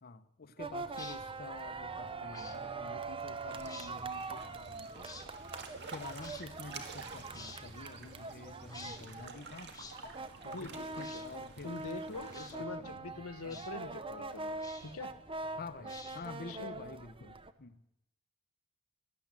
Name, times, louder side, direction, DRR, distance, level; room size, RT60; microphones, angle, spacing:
voice 1, 0.0-5.1 5.9-9.7 10.4-11.7 12.5-13.1 13.4-13.7 15.5-17.8, left 3 dB, 45° left, 12 dB, 0.8 m, -49 dB
sound 1, 0.6-17.5, right 3 dB, 25° right, 0.8 m, -43 dB
sound 2, 0.9-1.2 2.3-2.6 3.6-3.9 5.0-5.3 6.2-6.4 7.3-7.6 8.7-9.0 9.7-10.0 10.9-11.3 12.2-12.6 13.5-13.7 14.6-15.0 15.8-16.4, left 4 dB, 15° left, 1.3 m, -50 dB
sound 3, 3.5-12.6, right 4 dB, 50° right, 1.9 m, -50 dB
voice 2, 10.5-11.2 11.6-14.6 14.8-15.1 16.5-16.7, left 3 dB, 70° left, 12 dB, 1.2 m, -44 dB
16.5 x 11.5 x 7.6 m, 0.86 s
head